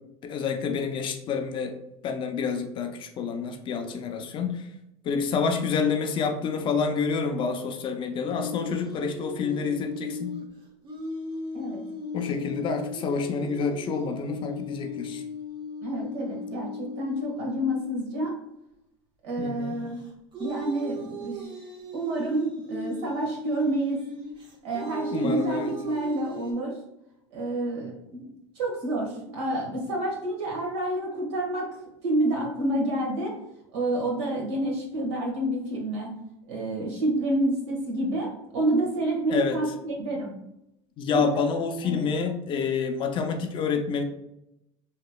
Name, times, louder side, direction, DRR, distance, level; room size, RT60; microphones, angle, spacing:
voice 1, 0.2-1.7 2.0-4.7 5.0-10.4 12.1-15.2 19.4-19.7 25.1-25.7 39.3-39.6 41.0-44.0, left 5 dB, 35° left, 5 dB, 0.4 m, -28 dB
sound 1, 8.2-18.4 19.9-26.5, left 1 dB, 30° right, 0.7 m, -38 dB
voice 2, 15.8-18.3 19.2-20.0 20.4-21.5 21.9-24.0 24.6-26.8 27.3-28.3 28.5-31.8 32.0-33.4 33.7-36.1 36.5-40.3 41.1-41.4 41.8-42.0, right 1 dB, 80° right, -1 dB, 1.2 m, -28 dB
2.9 x 2.7 x 2.2 m, 0.84 s
supercardioid pair, 125°, 15 cm